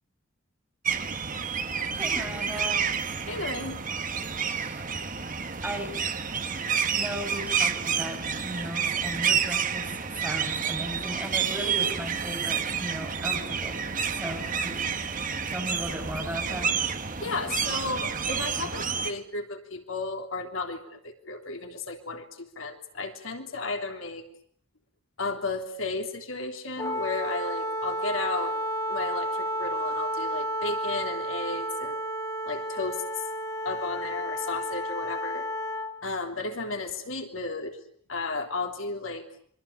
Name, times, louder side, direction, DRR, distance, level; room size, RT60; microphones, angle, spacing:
sound 1, 0.9-19.1, right 6 dB, 40° right, 1.6 m, -29 dB
voice 1, 1.7-2.8 4.5-4.9 5.6-5.9 6.9-14.7 15.5-16.7, equal, 10° right, 2 dB, 6.9 m, -36 dB
voice 2, 3.3-3.8 17.2-24.2 25.2-28.6 28.9-32.0 32.5-33.0 33.6-35.5 36.0-37.8 38.1-39.3, left 3 dB, 75° left, 4 dB, 3.3 m, -34 dB
Wind instrument woodwind instrument, 26.8-36.0, equal, 15° left, 1.9 m, -31 dB
26.0 x 24.5 x 8.8 m, 0.63 s
head